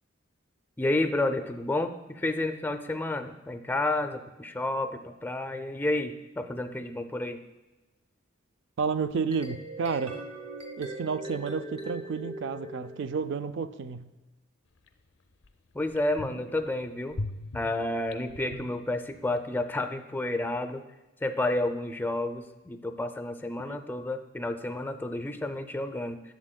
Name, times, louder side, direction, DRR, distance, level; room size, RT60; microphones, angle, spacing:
voice 1, 0.8-7.4 15.7-17.2 17.5-20.8 21.2-26.2, left 2 dB, 10° left, 8 dB, 0.4 m, -30 dB
voice 2, 8.8-10.2 10.8-14.1 23.7-23.8, right 5 dB, 65° right, 11 dB, 0.4 m, -31 dB
sound 1, 9.1-13.4, right 1 dB, 30° right, 1.0 m, -41 dB
sound 2, 14.9-15.0 15.4-15.5 15.9-16.7 17.1-19.4 19.6-19.7, left 2 dB, 70° left, 0.5 m, -39 dB
11.0 x 7.2 x 2.2 m, 1.1 s
head